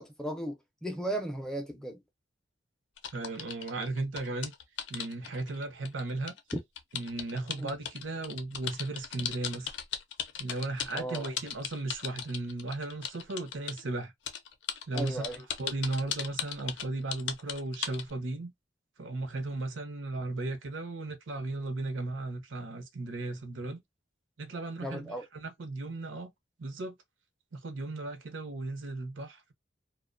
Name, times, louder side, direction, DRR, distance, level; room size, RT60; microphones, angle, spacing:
voice 1, 0.0-2.0 7.6-7.7 10.9-11.3 14.9-15.4 24.8-25.2, right 1 dB, 5° left, 0.3 m, -36 dB
sound 1, 3.0-13.8 14.3-18.1, left 9 dB, 70° left, 0.4 m, -37 dB
voice 2, 3.1-4.5 4.9-6.3 6.9-9.7 10.4-14.1 14.9-18.5 19.0-23.8 24.4-26.3 26.6-27.0 27.5-29.5, right 2 dB, 90° right, 0.6 m, -36 dB
2.4 x 2.1 x 2.4 m
head